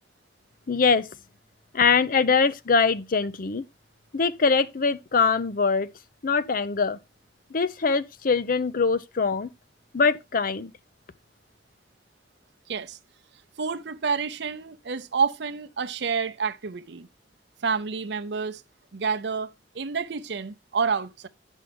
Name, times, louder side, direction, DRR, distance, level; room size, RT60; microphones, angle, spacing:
voice 1, 0.7-1.1 1.7-3.6 4.1-5.9 6.2-7.0 7.5-9.5 9.9-10.7, left 5 dB, 50° left, 0.6 m, -23 dB
voice 2, 12.7-13.0 13.6-17.1 17.6-18.6 18.9-21.3, right 5 dB, 65° right, 0.6 m, -29 dB
9.7 x 6.3 x 3.5 m
head